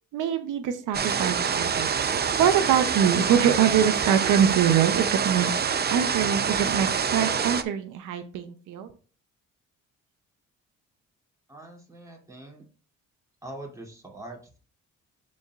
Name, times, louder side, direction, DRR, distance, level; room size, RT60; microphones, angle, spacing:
voice 1, 0.1-1.9 2.4-5.5 5.9-8.9, right 9 dB, 85° right, 8 dB, 0.8 m, -24 dB
sound 1, 0.9-7.6, right 6 dB, 35° right, 0.6 m, -26 dB
voice 2, 11.5-12.6 13.4-14.6, right 1 dB, 10° right, -1 dB, 2.7 m, -43 dB
12.5 x 4.3 x 2.4 m, 0.38 s
cardioid pair, 90°, 30 cm